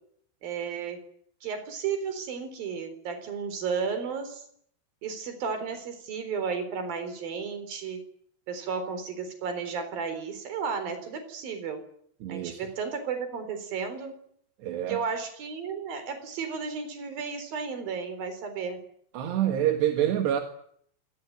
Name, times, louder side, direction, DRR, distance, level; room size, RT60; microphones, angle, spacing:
voice 1, 0.4-1.0 1.4-4.5 5.0-8.0 8.5-11.8 12.3-14.1 14.9-18.8, right 6 dB, 60° right, 10 dB, 5.6 m, -33 dB
voice 2, 12.2-12.6 14.6-15.0 19.1-20.4, right 11 dB, 80° right, 6 dB, 3.9 m, -26 dB
26.5 x 18.5 x 9.4 m, 0.66 s
omnidirectional pair, 4.9 m